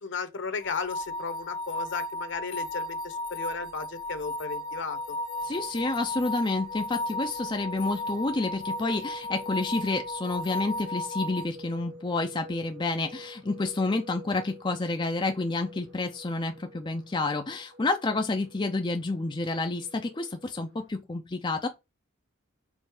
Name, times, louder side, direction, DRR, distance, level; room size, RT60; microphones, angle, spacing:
voice 1, 0.0-5.2, left 4 dB, 60° left, 1.1 m, -35 dB
sound 1, 0.6-11.4, left 1 dB, 80° left, 1.6 m, -35 dB
sound 2, 3.1-20.9, equal, 55° right, 1.6 m, -49 dB
voice 2, 5.4-21.7, left 3 dB, 25° left, 0.5 m, -29 dB
5.4 x 3.9 x 4.8 m
head